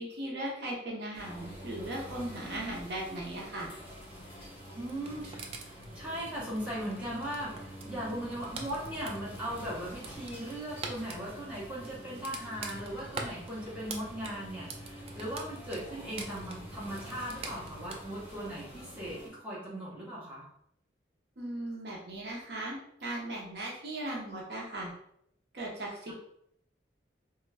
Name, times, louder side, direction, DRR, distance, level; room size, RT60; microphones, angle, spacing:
voice 1, 0.0-3.7 21.4-24.9 25.5-26.1, right 1 dB, 55° right, -3 dB, 0.7 m, -38 dB
sound 1, 1.1-19.3, equal, 30° left, 1.4 m, -47 dB
voice 2, 4.7-5.5 5.9-20.5, right 1 dB, 5° right, -8 dB, 1.0 m, -38 dB
sound 2, 4.8-18.0, right 3 dB, 30° right, 0.3 m, -46 dB
3.0 x 2.2 x 3.3 m, 0.72 s
head